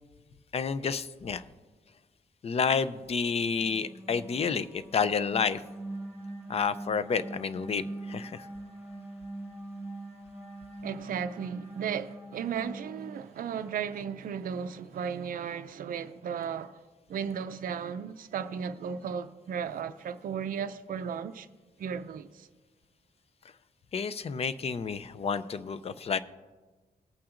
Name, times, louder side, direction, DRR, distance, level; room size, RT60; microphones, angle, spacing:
voice 1, 0.5-1.4 2.4-5.6 6.5-8.5 23.9-26.2, left 6 dB, 40° left, 0.4 m, -30 dB
sound 1, 3.2-13.7, right 2 dB, 15° right, 1.8 m, -43 dB
voice 2, 10.8-16.8 17.1-21.5 21.8-22.5, right 7 dB, 60° right, 0.4 m, -35 dB
18.5 x 8.7 x 2.5 m
wide cardioid pair, 165°, 16 cm